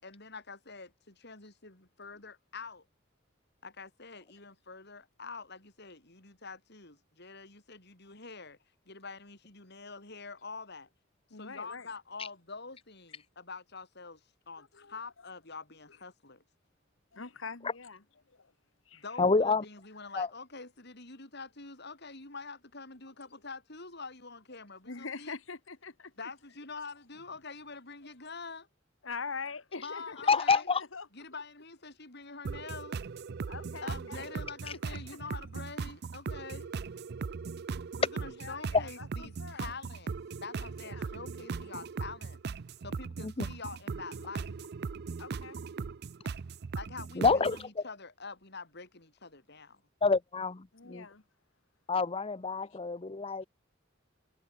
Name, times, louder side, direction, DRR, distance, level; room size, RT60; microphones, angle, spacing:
voice 1, 0.0-2.9 3.6-8.6 8.9-10.9 11.3-16.4 18.9-25.4 26.2-28.7 29.8-30.7 31.1-33.0 33.8-36.8 37.9-42.4 42.8-44.5 46.7-49.8 50.9-51.0, left 4 dB, 60° left, 7.9 m, -46 dB
voice 2, 11.3-11.9 14.6-15.0 17.1-18.5 18.8-19.0 24.8-26.1 29.0-31.1 33.5-34.3 34.9-35.2 38.2-39.7 40.8-41.2 45.2-45.6 50.7-51.2 52.6-52.8, left 4 dB, 75° left, 1.6 m, -44 dB
voice 3, 19.2-19.6 20.2-20.3 30.3-30.8 43.2-43.5 47.2-47.6 50.0-51.0 51.9-53.4, left 4 dB, 30° left, 0.7 m, -27 dB
sound 1, 32.4-47.6, right 5 dB, 55° right, 0.5 m, -39 dB
head